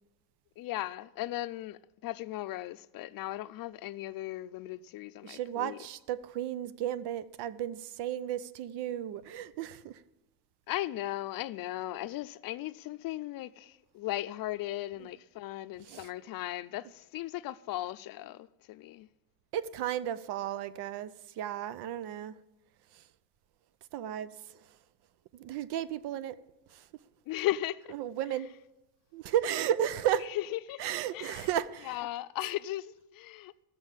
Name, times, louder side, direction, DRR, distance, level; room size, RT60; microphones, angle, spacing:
voice 1, 0.6-5.8 10.7-19.1 27.3-27.9 30.2-30.8 31.1-31.5 31.8-33.5, left 15 dB, 60° left, 0.5 m, -37 dB
voice 2, 5.2-9.9 15.9-16.1 19.5-21.1 21.4-22.3 23.9-24.3 25.4-26.3 28.0-28.5 29.1-30.3 30.8-31.9, right 11 dB, 90° right, 0.7 m, -33 dB
14.0 x 7.0 x 7.2 m
cardioid pair, 170°, 39 cm